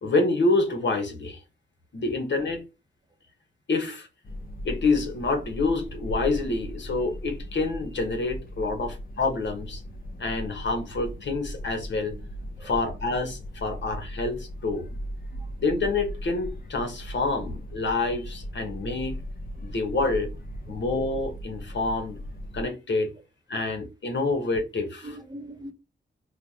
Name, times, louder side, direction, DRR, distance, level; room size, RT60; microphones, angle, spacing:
voice 1, 0.0-1.4 1.9-2.6 3.7-4.1 4.6-9.8 10.2-12.2 12.6-14.9 15.6-19.2 19.6-20.3 20.7-22.2 22.5-23.1 23.5-25.1, left 3 dB, 65° left, 1.0 m, -27 dB
sound 1, 4.2-22.6, equal, 50° left, 0.7 m, -38 dB
voice 2, 12.6-12.9 13.7-13.9 15.3-15.5 18.6-18.7 20.7-20.8 25.0-25.7, right 1 dB, 20° right, 0.6 m, -43 dB
3.2 x 2.1 x 4.0 m
wide cardioid pair, 115°, 20 cm